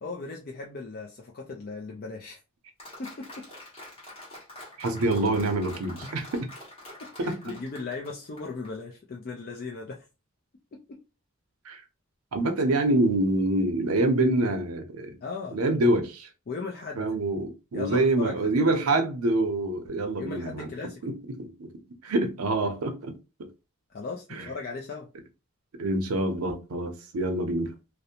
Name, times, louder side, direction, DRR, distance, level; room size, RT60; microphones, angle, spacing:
voice 1, 0.0-2.4 3.0-3.5 6.0-6.3 7.0-10.1 10.7-11.0 12.7-12.8 15.2-15.6 16.5-17.1 17.7-18.7 20.2-21.1 23.9-25.1, left 4 dB, 45° left, 0.4 m, -37 dB
Applause, 2.8-8.7, left 1 dB, 25° left, 1.0 m, -46 dB
voice 2, 4.8-6.5 7.3-7.6 11.7-11.8 12.3-15.1 15.5-16.3 17.0-20.7 21.0-21.1 21.4-21.7 22.0-23.1 24.3-24.5 25.8-27.7, right 2 dB, 85° right, 0.6 m, -26 dB
2.5 x 2.0 x 2.7 m
head